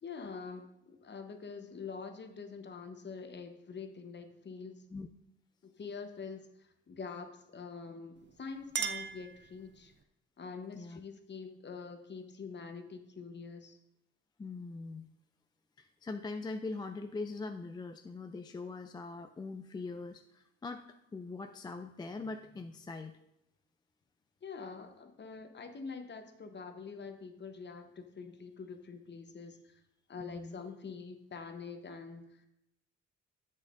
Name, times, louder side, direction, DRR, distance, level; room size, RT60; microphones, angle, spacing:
voice 1, 0.0-4.8 5.6-9.9 10.4-13.8 24.4-29.8 30.1-32.5, left 5 dB, 35° left, 6 dB, 0.9 m, -45 dB
Chink clink, 8.2-10.0, right 6 dB, 40° right, 0.5 m, -40 dB
voice 2, 14.4-15.1 15.8-20.8 21.1-23.1 30.2-30.6, left 3 dB, 15° left, 6 dB, 0.3 m, -42 dB
10.0 x 7.5 x 2.5 m, 0.83 s
cardioid pair, 90°, 30 cm